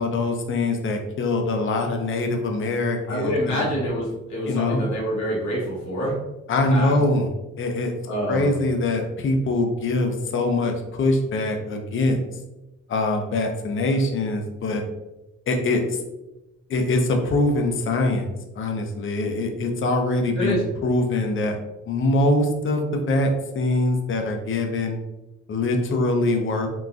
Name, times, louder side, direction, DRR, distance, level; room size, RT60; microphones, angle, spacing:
voice 1, 0.0-3.7 4.5-4.8 6.5-7.3 7.6-7.9 8.3-12.2 12.9-14.8 15.5-16.0 16.7-18.3 18.6-21.6 21.9-25.0 25.5-26.7, left 2 dB, 40° left, 4 dB, 0.6 m, -23 dB
voice 2, 3.1-6.2 6.6-6.9 8.1-8.6 20.4-20.6, equal, 70° left, -5 dB, 1.3 m, -26 dB
3.9 x 2.2 x 2.4 m, 0.97 s
cardioid pair, 90°, 30 cm